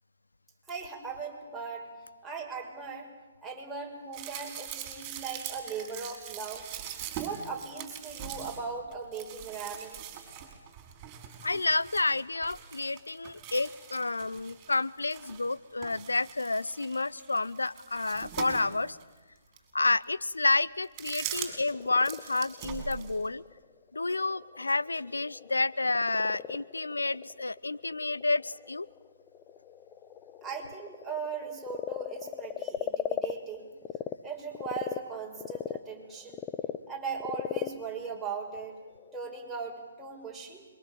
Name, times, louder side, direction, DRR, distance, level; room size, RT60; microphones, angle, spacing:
voice 1, 0.7-1.9 2.2-3.1 3.4-6.7 7.2-10.0 30.4-33.7 34.2-36.5 36.9-38.8 39.1-40.7, right 5 dB, 5° right, -3 dB, 5.3 m, -39 dB
sound 1, 4.1-15.5 15.8-19.0 19.6-19.7 20.8-21.7 22.0-23.3, right 10 dB, 25° right, 5.4 m, -42 dB
voice 2, 11.4-19.0 19.7-23.4 23.9-28.9, left 3 dB, 85° left, 16 dB, 0.8 m, -30 dB
Frog, 21.3-34.1 34.5-39.2, left 10 dB, 20° left, 0.9 m, -39 dB
26.0 x 23.5 x 8.8 m, 1.3 s
figure-of-eight pair, 135°, 0 cm